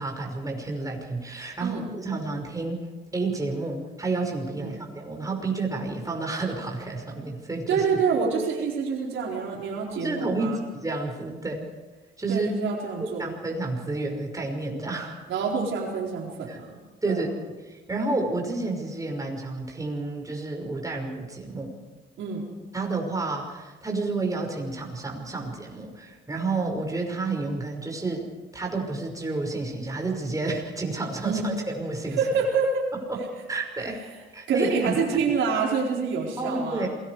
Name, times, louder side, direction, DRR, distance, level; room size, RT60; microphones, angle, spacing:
voice 1, 0.0-2.8 3.1-7.8 9.9-11.7 12.2-12.5 13.0-15.2 16.5-16.6 17.0-21.7 22.7-28.2 28.5-32.2 33.1-33.2 33.5-34.0 34.3-35.0 36.4-36.9, right 3 dB, 15° right, 0 dB, 5.7 m, -30 dB
voice 2, 7.7-10.6 12.3-13.3 15.3-16.7 17.1-17.2 22.2-22.4 31.2-31.4 32.2-32.9 33.2-33.3 34.1-34.2 34.5-36.9, right 5 dB, 80° right, -1 dB, 4.3 m, -27 dB
27.5 x 20.0 x 4.9 m, 1.2 s
cardioid pair, 90°, 20 cm